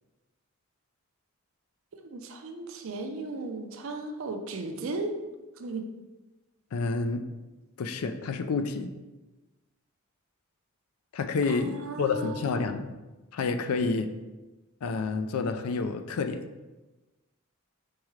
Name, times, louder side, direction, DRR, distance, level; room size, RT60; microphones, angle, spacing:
voice 1, 1.9-5.2 5.6-5.8 11.5-12.8, right 2 dB, 60° right, 5 dB, 0.5 m, -36 dB
voice 2, 6.7-7.2 7.8-8.9 11.1-12.9 13.3-14.1 14.8-16.4, left 4 dB, 80° left, 8 dB, 0.4 m, -29 dB
4.7 x 3.7 x 3.1 m, 1.1 s
head